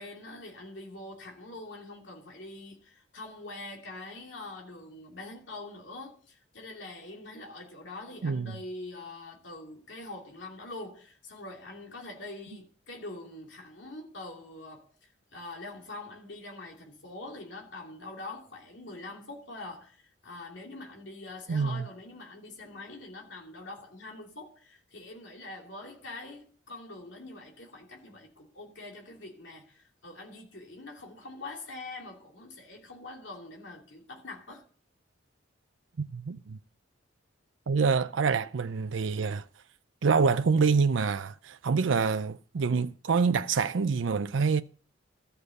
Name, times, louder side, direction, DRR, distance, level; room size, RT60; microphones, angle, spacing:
voice 1, 0.0-34.7, left 2 dB, 65° left, 2.8 m, -44 dB
voice 2, 8.2-8.6 21.5-21.8 36.0-36.6 37.7-39.5 40.0-44.6, right 5 dB, 70° right, 0.5 m, -26 dB
13.5 x 6.8 x 7.9 m
head